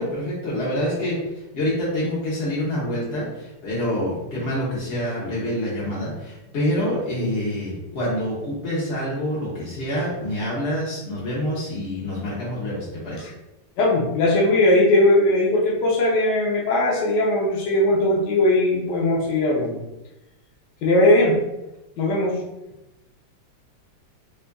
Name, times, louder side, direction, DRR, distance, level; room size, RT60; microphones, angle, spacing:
voice 1, 0.0-13.3, equal, 50° left, -7 dB, 0.8 m, -26 dB
voice 2, 13.8-19.8 20.8-21.4 22.0-22.4, left 1 dB, 65° left, -4 dB, 1.2 m, -19 dB
5.2 x 2.4 x 2.2 m, 0.95 s
omnidirectional pair, 2.2 m